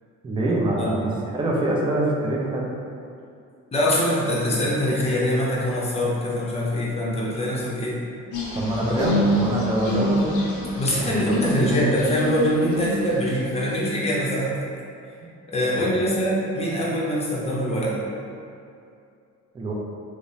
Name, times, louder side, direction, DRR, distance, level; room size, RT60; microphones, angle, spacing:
voice 1, 0.2-2.7 8.5-10.3 11.0-11.5 15.8-16.0 19.5-19.7, right 1 dB, 15° right, -3 dB, 0.4 m, -25 dB
voice 2, 3.7-8.0 8.8-9.0 10.8-14.6 15.5-17.9, equal, 20° left, -6 dB, 0.6 m, -23 dB
sound 1, 8.3-13.2 13.6-14.0, equal, 80° left, 0.6 m, -26 dB
2.9 x 2.0 x 2.6 m, 2.5 s
cardioid pair, 90°, 30 cm